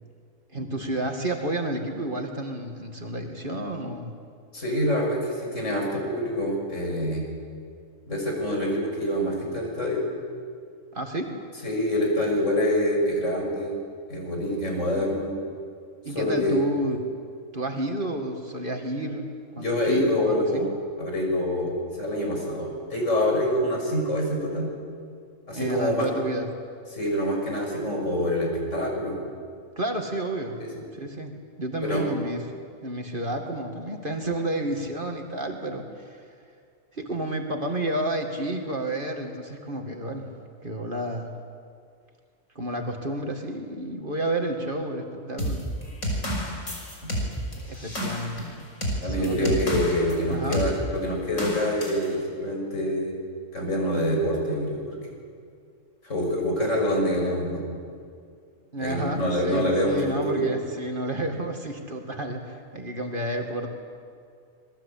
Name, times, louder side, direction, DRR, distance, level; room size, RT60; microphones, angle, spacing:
voice 1, 0.5-4.1 10.9-11.3 16.0-17.0 17.5-19.3 19.5-20.7 25.5-26.5 29.8-30.6 31.0-31.3 31.6-36.2 36.9-40.3 40.6-41.3 42.6-45.7 47.6-48.7 49.0-49.8 50.3-50.6 58.7-63.7, right 1 dB, 40° right, 3 dB, 2.3 m, -30 dB
voice 2, 4.5-7.3 8.1-10.0 11.6-13.7 14.1-15.3 16.1-16.6 19.5-20.7 21.0-24.7 25.5-26.1 26.9-29.2 30.6-30.7 31.8-32.1 49.0-53.1 53.5-54.9 56.0-57.6 58.8-60.4, left 1 dB, 70° left, 0 dB, 6.6 m, -26 dB
sound 1, 45.4-50.2 50.5-50.7 51.4-52.1, equal, 90° left, 5.7 m, -30 dB
26.5 x 20.5 x 8.6 m, 2.2 s
omnidirectional pair, 1.4 m